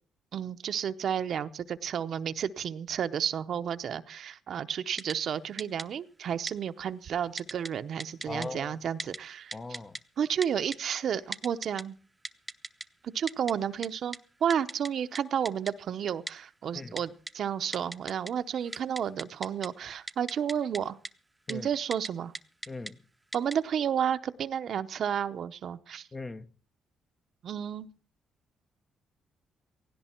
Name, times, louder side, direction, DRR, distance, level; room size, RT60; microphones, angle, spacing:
voice 1, 0.3-9.6 10.2-12.0 13.0-21.0 21.5-22.3 23.3-26.1 27.4-27.9, right 8 dB, 60° right, 0.8 m, -31 dB
Typing, 5.0-5.1 5.6-5.8 6.5-6.6 7.4-7.7 8.0-8.5 9.0-9.2 9.5-10.0 10.4-10.8 11.3-11.8 12.2-12.8 13.3-13.5 13.8-13.9 14.1-14.2 14.5-14.9 15.1-15.2 15.4-15.7 16.3-16.4 17.0-17.3 17.7-18.3 18.6-19.7 20.1-20.8 21.0-21.1 21.5-21.6 21.9-22.1 22.3-22.9 23.3-23.5, right 2 dB, 15° right, 0.8 m, -37 dB
voice 2, 8.3-8.8 9.5-10.0 16.7-17.0 21.5-21.7 22.7-23.0 26.1-26.5, left 3 dB, 25° left, 0.8 m, -39 dB
17.0 x 16.0 x 4.5 m
cardioid pair, 90°, 0 cm